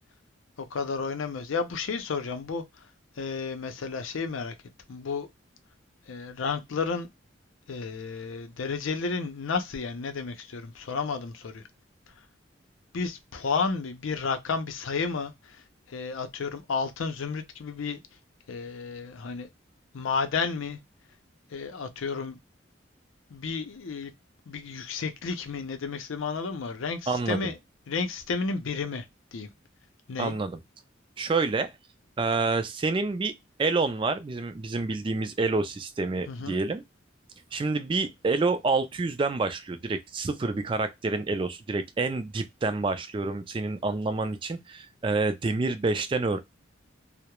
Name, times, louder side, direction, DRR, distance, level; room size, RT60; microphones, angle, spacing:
voice 1, 0.6-2.9 3.2-4.5 4.9-5.3 6.1-7.1 7.7-11.6 12.9-15.6 15.9-18.0 18.5-19.5 19.9-20.8 21.5-22.4 23.3-24.1 24.5-27.6 27.9-29.1 29.3-29.5 30.1-30.4 36.3-36.6, left 4 dB, 85° left, 0.5 m, -32 dB
voice 2, 27.1-27.5 30.2-30.6 31.2-31.7 32.2-33.3 33.6-36.8 37.5-46.4, right 3 dB, 25° right, 0.3 m, -28 dB
2.3 x 2.0 x 2.9 m
head